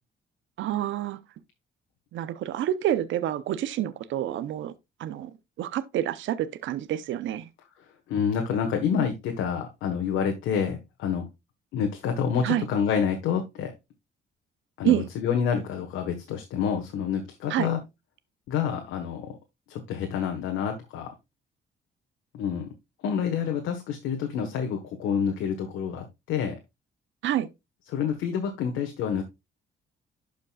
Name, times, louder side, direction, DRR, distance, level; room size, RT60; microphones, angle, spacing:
voice 1, 0.6-1.2 2.1-4.7 5.0-5.3 5.6-7.5 12.4-12.7 14.8-15.1 17.5-17.7 27.2-27.5, right 12 dB, 75° right, 0.7 m, -27 dB
voice 2, 8.1-11.3 11.7-13.7 14.8-17.8 18.5-19.4 19.7-21.1 22.3-22.7 23.0-26.6 27.9-29.2, left 7 dB, 90° left, 1.3 m, -28 dB
11.5 x 5.1 x 2.3 m
cardioid pair, 90°, 20 cm